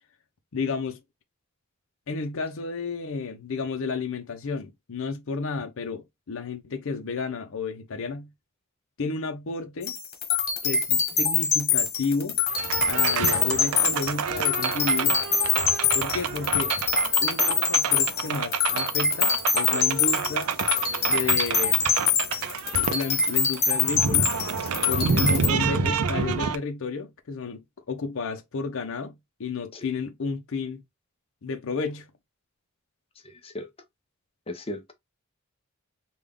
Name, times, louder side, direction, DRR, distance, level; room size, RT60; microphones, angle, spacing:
voice 1, 0.5-1.0 2.1-8.3 9.0-10.0 10.6-12.4 12.8-15.2 15.9-16.8 17.2-20.5 21.1-21.8 22.8-24.3 24.9-29.1 29.4-30.8 31.4-32.1, left 4 dB, 65° left, 0.6 m, -32 dB
sound 1, 9.8-25.5, left 6 dB, 50° left, 1.4 m, -24 dB
sound 2, 12.5-26.6, right 6 dB, 85° right, 0.4 m, -29 dB
voice 2, 25.1-25.5 29.7-29.9 33.2-33.7 34.5-34.9, left 1 dB, 30° left, 0.8 m, -37 dB
3.5 x 2.3 x 3.5 m
head